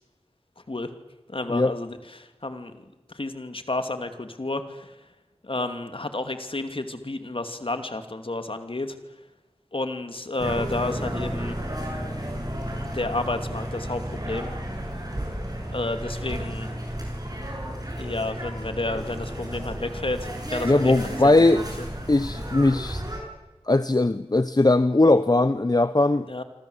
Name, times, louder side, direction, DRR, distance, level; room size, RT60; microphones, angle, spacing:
voice 1, 1.3-5.0 5.4-9.0 9.7-11.6 12.8-14.5 15.7-16.7 18.0-21.9 26.3-26.4, left 2 dB, 60° left, 8 dB, 2.6 m, -31 dB
sound 1, 10.4-23.2, equal, 35° right, 7.7 m, -33 dB
voice 2, 20.6-21.6 22.1-23.0 23.7-26.3, left 2 dB, 40° left, 13 dB, 0.9 m, -19 dB
26.5 x 26.0 x 8.1 m, 1.0 s
wide cardioid pair, 50°, 11 cm